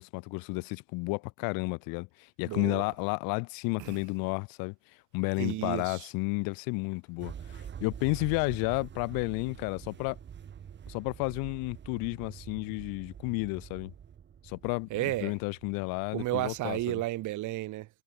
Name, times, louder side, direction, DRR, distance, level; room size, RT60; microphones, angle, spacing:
voice 1, 0.0-4.7 5.1-10.2 10.9-13.9 14.4-14.9 15.2-17.0, left 31 dB, 65° left, 2.5 m, -32 dB
voice 2, 2.4-2.8 3.8-4.0 5.4-6.1 14.9-15.3 16.1-17.9, right 17 dB, 50° right, 5.1 m, -32 dB
sound 1, 7.2-16.9, right 8 dB, 30° right, 3.7 m, -46 dB
supercardioid pair, 125°, 37 cm